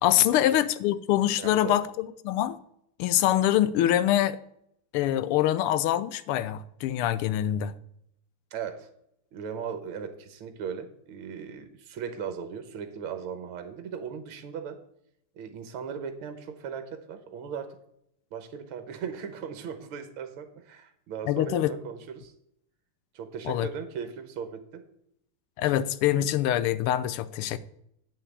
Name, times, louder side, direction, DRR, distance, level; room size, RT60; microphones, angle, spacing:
voice 1, 0.0-2.6 3.0-4.4 4.9-7.7 21.3-21.7 23.5-23.7 25.6-27.6, left 12 dB, 85° left, 1.6 m, -24 dB
voice 2, 1.4-1.8 8.5-8.9 9.3-14.8 15.4-17.8 18.3-22.3 23.1-24.8, right 7 dB, 75° right, 1.9 m, -38 dB
8.7 x 5.7 x 8.1 m
omnidirectional pair, 2.4 m